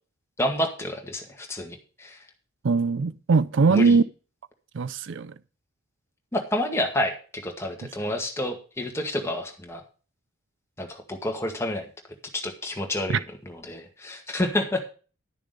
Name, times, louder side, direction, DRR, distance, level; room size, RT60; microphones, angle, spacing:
voice 1, 0.4-2.2 3.7-4.0 6.3-9.8 10.8-11.9 12.3-14.9, left 1 dB, 15° left, 1.9 m, -29 dB
voice 2, 2.6-4.0 4.7-5.3 13.1-13.2, right 4 dB, 60° right, 0.5 m, -21 dB
11.5 x 6.9 x 5.2 m
head